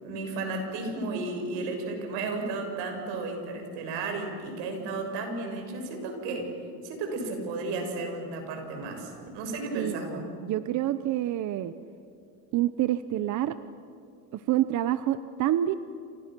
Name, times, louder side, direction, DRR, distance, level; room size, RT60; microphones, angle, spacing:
voice 1, 0.0-6.5 6.8-10.2, right 3 dB, 75° right, 3 dB, 6.5 m, -33 dB
voice 2, 10.4-11.7 12.5-13.5 14.3-15.8, right 13 dB, 45° right, 12 dB, 0.8 m, -27 dB
29.0 x 28.5 x 6.1 m, 2.3 s
cardioid pair, 155°, 42 cm